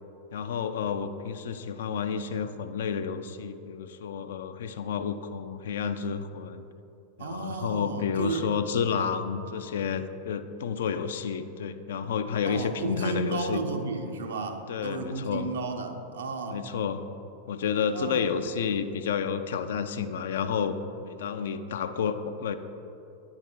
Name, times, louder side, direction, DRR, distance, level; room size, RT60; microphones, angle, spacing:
voice 1, 0.3-6.6 7.2-13.6 14.7-15.5 16.5-17.0 17.5-20.8 21.0-22.5, left 6 dB, 60° left, 9 dB, 0.3 m, -30 dB
voice 2, 7.2-8.5 12.4-16.6 17.9-18.3, right 3 dB, 65° right, 5 dB, 0.6 m, -33 dB
9.5 x 3.8 x 4.4 m, 2.8 s
figure-of-eight pair, 90°, 0 cm